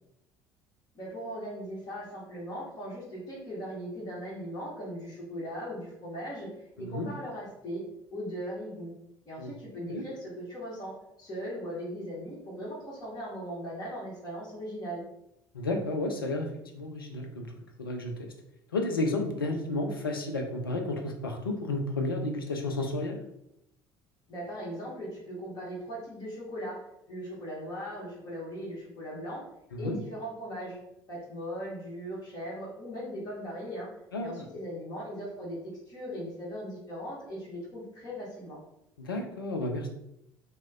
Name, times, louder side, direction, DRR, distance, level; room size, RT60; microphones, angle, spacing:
voice 1, 0.9-7.8 8.1-8.9 9.2-15.0 24.3-26.8 27.1-29.4 29.8-30.8 31.1-33.9 34.2-38.6, equal, 35° left, -6 dB, 1.4 m, -39 dB
voice 2, 15.5-16.5 16.7-17.5 17.8-18.1 18.7-23.2 29.7-30.0 34.1-34.4 39.0-39.9, left 2 dB, 85° left, 3 dB, 0.4 m, -32 dB
3.0 x 2.1 x 3.5 m, 0.81 s
figure-of-eight pair, 60°, 11 cm